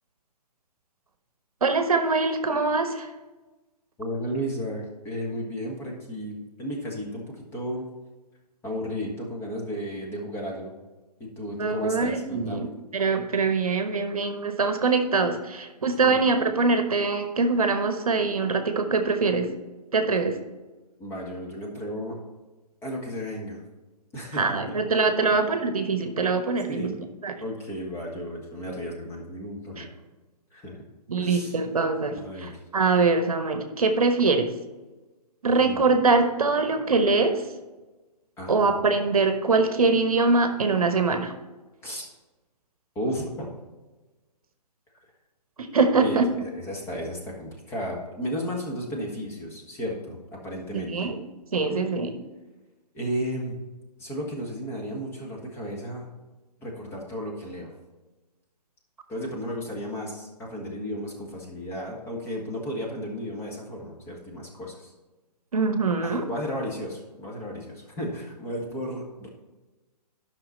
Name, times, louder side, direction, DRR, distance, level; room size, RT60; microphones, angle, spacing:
voice 1, 1.6-3.1 11.6-19.5 19.9-20.4 24.3-27.0 27.2-27.3 29.8-29.9 31.1-34.5 35.4-37.5 38.5-41.3 45.6-46.3 50.7-51.2 51.5-52.2 65.5-66.3, right 4 dB, 60° right, 7 dB, 1.1 m, -23 dB
voice 2, 4.0-7.9 8.6-10.7 11.2-12.7 16.0-16.2 21.0-22.2 22.8-23.6 24.1-24.8 25.3-25.4 26.7-26.9 27.4-29.9 30.5-30.8 31.2-31.5 32.2-32.6 35.4-35.9 38.4-38.9 41.8-42.1 42.9-43.5 46.0-46.2 46.6-51.1 52.9-53.6 54.0-56.1 56.6-57.7 59.1-64.9 66.0-69.3, equal, 10° left, -2 dB, 1.5 m, -34 dB
11.5 x 5.9 x 4.2 m, 1.2 s
figure-of-eight pair, 130°, 21 cm